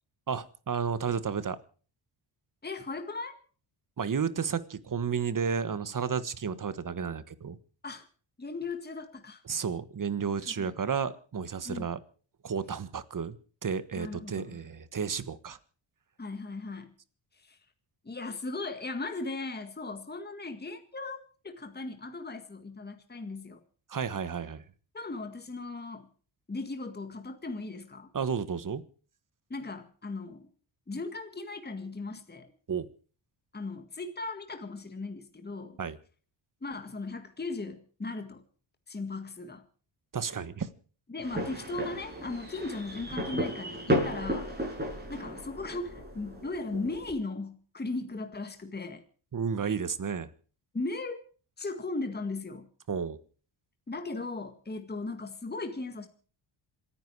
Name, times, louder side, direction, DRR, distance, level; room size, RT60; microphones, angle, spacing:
voice 1, 0.3-1.6 4.0-7.6 9.5-12.0 12.4-13.4 13.6-15.6 23.9-24.6 28.1-28.8 32.7-32.9 35.8-36.0 40.1-40.7 49.3-50.3 52.9-53.2, right 6 dB, 40° right, 14 dB, 1.4 m, -32 dB
voice 2, 2.6-3.4 7.8-8.1 8.4-9.4 10.5-10.7 11.6-11.9 14.0-14.6 16.2-16.9 17.4-17.6 18.0-21.2 21.4-23.6 24.9-26.1 26.5-28.1 29.5-30.5 30.9-32.5 33.5-35.8 36.6-38.4 38.9-39.6 41.1-44.5 45.1-49.0 50.7-51.2 51.6-52.7 53.9-56.1, left 3 dB, 20° left, 7 dB, 1.9 m, -37 dB
sound 1, 41.2-47.1, equal, 20° right, 7.3 m, -34 dB
27.0 x 10.0 x 4.8 m, 0.41 s
cardioid pair, 90°, 49 cm